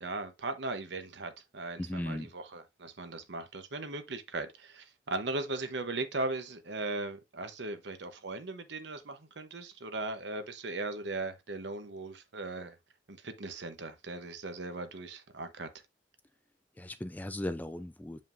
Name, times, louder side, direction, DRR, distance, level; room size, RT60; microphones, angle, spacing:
voice 1, 0.0-12.8 13.1-15.7, right 2 dB, 60° right, 1.0 m, -38 dB
voice 2, 1.8-2.3 16.8-18.2, left 1 dB, 10° left, 0.3 m, -37 dB
7.3 x 5.1 x 2.6 m
head